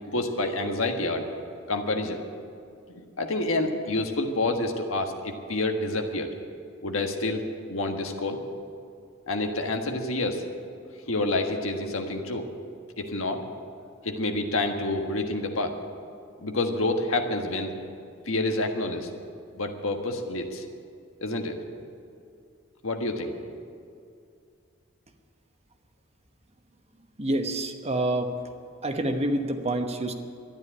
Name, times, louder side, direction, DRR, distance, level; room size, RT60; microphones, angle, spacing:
voice 1, 0.0-1.3 1.7-2.2 2.9-6.3 6.8-8.4 9.3-10.4 11.1-12.5 13.0-13.4 14.0-15.7 16.4-17.7 18.3-19.1 19.6-20.6 21.2-21.6 22.8-23.3, left 2 dB, 85° left, 4 dB, 1.6 m, -28 dB
voice 2, 27.2-28.3 28.8-30.1, right 1 dB, 30° right, 6 dB, 1.1 m, -27 dB
12.5 x 10.5 x 9.9 m, 2.4 s
head